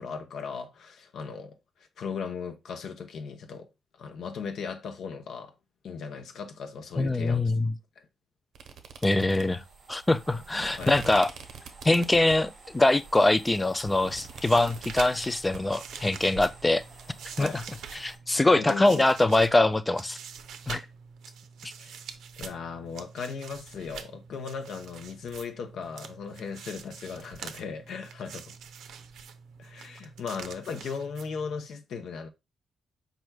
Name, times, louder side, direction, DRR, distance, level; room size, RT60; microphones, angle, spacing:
voice 1, 0.0-3.7 4.0-5.5 5.8-7.4 10.8-11.0 17.4-17.5 18.6-19.1 21.8-22.0 22.4-28.6 29.6-32.3, left 5 dB, 65° left, 0.8 m, -37 dB
voice 2, 7.0-7.7 9.0-9.6 9.9-11.3 11.8-16.8 17.4-17.5 17.9-20.2 20.7-20.9 21.6-21.7, left 2 dB, 10° left, 0.3 m, -23 dB
sound 1, 8.5-12.6 13.0-15.6, right 6 dB, 65° right, 0.9 m, -44 dB
sound 2, 9.1-18.2, right 3 dB, 35° right, 2.9 m, -51 dB
sound 3, 14.1-31.7, right 7 dB, 80° right, 0.6 m, -45 dB
5.2 x 4.6 x 2.2 m
wide cardioid pair, 160°, 0 cm